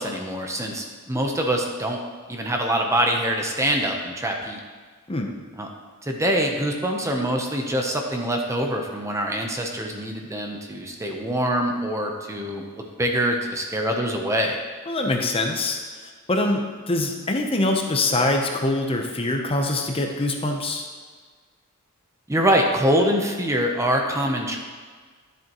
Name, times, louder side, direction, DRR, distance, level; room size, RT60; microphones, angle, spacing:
voice 1, 0.0-2.0 2.3-4.6 5.6-5.7 6.0-14.6 22.3-24.6, equal, 15° right, 2 dB, 0.7 m, -24 dB
voice 2, 14.9-15.8 16.3-20.8, left 2 dB, 25° left, 3 dB, 0.7 m, -24 dB
11.0 x 7.7 x 3.0 m, 1.5 s
head